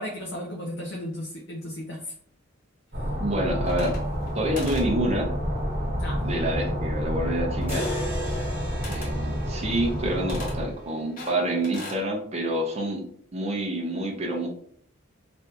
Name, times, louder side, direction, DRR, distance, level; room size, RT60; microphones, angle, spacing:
voice 1, 0.0-2.1 6.0-6.3, equal, 60° left, 0 dB, 0.5 m, -35 dB
sound 1, 2.9-10.7, equal, 45° right, 1.1 m, -29 dB
voice 2, 3.2-4.0 4.3-5.3 6.2-7.9 8.9-13.0 13.3-14.5, right 1 dB, 30° right, 0 dB, 0.6 m, -27 dB
sound 2, 3.6-4.3 4.6-4.9 7.6-8.1 8.8-9.2 10.3-10.6 11.2-12.0, left 2 dB, 40° left, 0.9 m, -40 dB
sound 3, 7.7-11.8, equal, 10° right, 0.9 m, -37 dB
3.3 x 2.6 x 2.7 m, 0.62 s
head